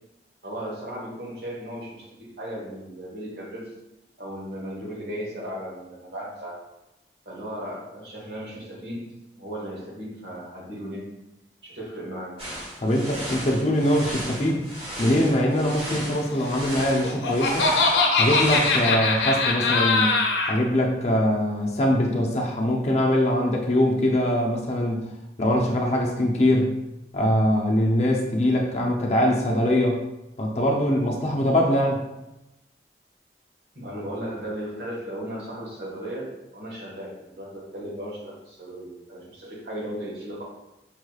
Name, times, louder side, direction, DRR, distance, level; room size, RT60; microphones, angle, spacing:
voice 1, 0.4-3.7 4.2-6.6 7.2-11.1 11.6-12.4 33.7-40.4, equal, 75° right, -4 dB, 1.4 m, -36 dB
sound 1, 12.4-18.9, equal, 35° right, 1.2 m, -35 dB
voice 2, 12.8-14.6 15.0-17.7 18.1-20.1 20.5-25.0 25.4-26.7 27.1-30.0 30.4-32.0, equal, 40° left, -1 dB, 0.6 m, -22 dB
Laughter, 16.8-20.6, left 3 dB, 90° left, 0.7 m, -22 dB
5.5 x 3.1 x 2.3 m, 0.93 s
head